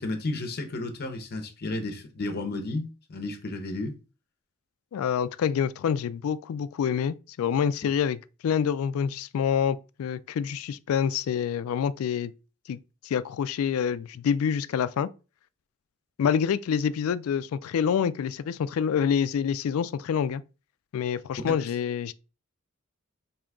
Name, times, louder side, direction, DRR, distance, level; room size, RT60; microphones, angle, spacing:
voice 1, 0.0-4.0, left 2 dB, 50° left, 0.7 m, -32 dB
voice 2, 4.9-12.3 12.7-15.1 16.2-20.4 20.9-22.1, left 7 dB, 85° left, 0.3 m, -27 dB
3.7 x 2.7 x 3.4 m
head